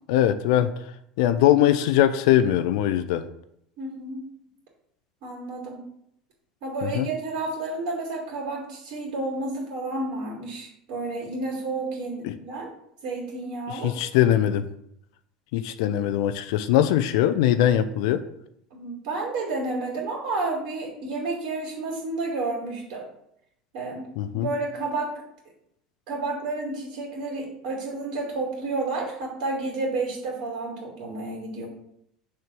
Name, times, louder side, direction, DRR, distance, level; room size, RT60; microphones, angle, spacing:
voice 1, 0.1-0.7 1.2-3.3 6.8-7.1 12.2-12.3 13.7-14.7 15.5-18.2 24.2-24.5, left 11 dB, 60° left, 11 dB, 0.4 m, -21 dB
voice 2, 3.8-4.2 5.2-5.8 6.6-12.7 13.0-14.0 18.7-23.1 23.7-25.1 26.1-31.7, right 3 dB, 55° right, -3 dB, 2.7 m, -31 dB
6.4 x 3.4 x 6.0 m, 0.73 s
figure-of-eight pair, 70°, 3 cm